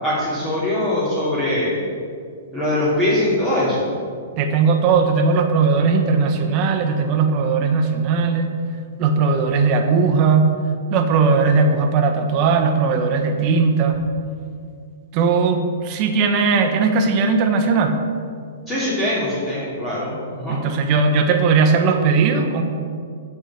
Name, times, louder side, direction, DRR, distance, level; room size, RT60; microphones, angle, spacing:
voice 1, 0.0-1.8 2.5-3.9 18.7-20.6, left 1 dB, 15° left, -9 dB, 2.8 m, -22 dB
voice 2, 4.4-8.6 9.0-10.5 10.9-14.0 15.1-18.0 20.5-22.6, right 4 dB, 35° right, 4 dB, 1.2 m, -18 dB
8.4 x 6.0 x 7.6 m, 2.2 s
hypercardioid pair, 140°, 0 cm